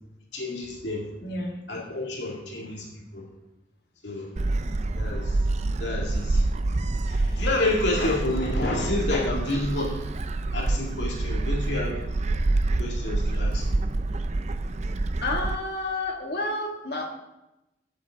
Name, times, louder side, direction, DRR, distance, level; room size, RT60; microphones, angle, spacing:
voice 1, 0.3-1.1 1.7-2.9 3.1-3.2 4.0-4.3 5.0-5.4 5.8-6.4 7.1-10.0 10.5-12.0 12.8-13.8, left 2 dB, 80° left, -2 dB, 2.2 m, -29 dB
voice 2, 1.2-1.6 15.2-17.1, left 2 dB, 60° left, 1 dB, 1.9 m, -30 dB
Gull seagull, 4.4-15.6, right 2 dB, 40° right, 0.5 m, -27 dB
13.0 x 7.7 x 3.6 m, 0.92 s
head